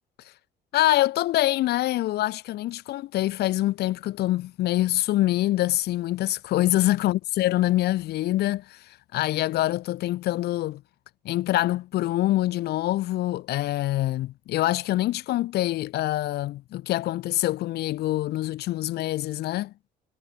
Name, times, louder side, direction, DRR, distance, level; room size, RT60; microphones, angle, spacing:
voice 1, 0.7-10.8 11.3-19.7, left 15 dB, 75° left, 1.8 m, -25 dB
cardioid pair, 110°, 17 cm